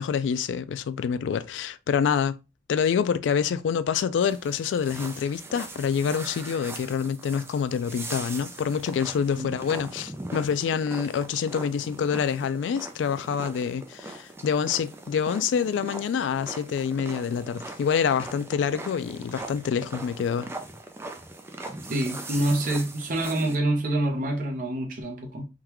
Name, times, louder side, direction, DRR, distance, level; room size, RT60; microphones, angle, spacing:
voice 1, 0.0-2.4 2.7-20.5, left 7 dB, 90° left, 0.3 m, -26 dB
sound 1, 4.2-23.6, right 2 dB, 15° right, 0.4 m, -40 dB
voice 2, 21.9-25.4, right 1 dB, 50° right, 0.8 m, -26 dB
3.6 x 2.3 x 2.9 m
head